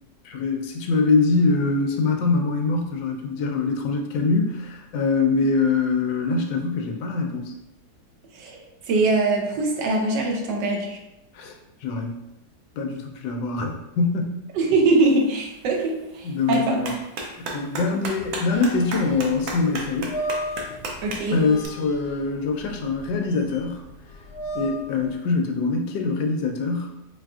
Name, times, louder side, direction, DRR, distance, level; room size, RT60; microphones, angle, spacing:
voice 1, 0.2-7.5 11.3-11.5 11.8-12.2 12.8-14.4 16.2-20.1 21.3-23.8 24.5-26.9, left 4 dB, 85° left, 3 dB, 1.3 m, -24 dB
voice 2, 8.9-11.0 14.5-16.8 21.0-21.4, right 3 dB, 85° right, 1 dB, 1.3 m, -22 dB
Clapping, 15.0-21.7, right 2 dB, 65° right, 0.9 m, -36 dB
sound 1, 18.5-25.1, equal, 50° left, 0.7 m, -35 dB
4.5 x 2.5 x 2.3 m, 0.91 s
omnidirectional pair, 1.9 m